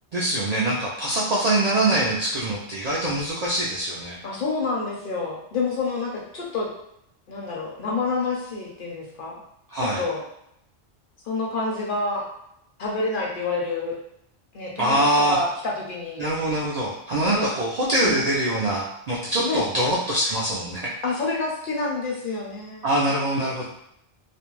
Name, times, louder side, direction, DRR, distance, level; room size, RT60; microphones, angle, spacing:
voice 1, 0.1-4.2 9.7-10.0 14.8-15.4 16.2-20.9 22.8-23.6, right 1 dB, 60° right, -5 dB, 0.4 m, -23 dB
voice 2, 4.2-6.7 7.3-9.4 9.8-10.2 11.2-12.3 12.8-14.0 14.5-15.0 15.3-16.2 17.2-17.5 18.0-18.3 19.4-19.6 21.0-23.0, left 3 dB, 60° left, -3 dB, 0.7 m, -28 dB
2.4 x 2.1 x 3.0 m, 0.77 s
omnidirectional pair, 1.2 m